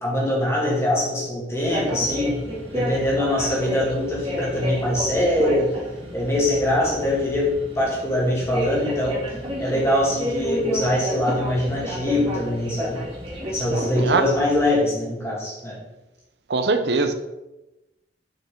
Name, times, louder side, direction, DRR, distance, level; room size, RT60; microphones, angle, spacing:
voice 1, 0.0-2.4 2.7-5.8 6.1-9.2 9.6-13.0 13.5-15.8, left 1 dB, 15° left, -5 dB, 2.3 m, -23 dB
sound 1, 1.6-14.6, equal, 30° right, 1.7 m, -31 dB
voice 2, 16.5-17.1, right 4 dB, 70° right, 9 dB, 0.7 m, -21 dB
7.2 x 5.7 x 3.7 m, 0.99 s
head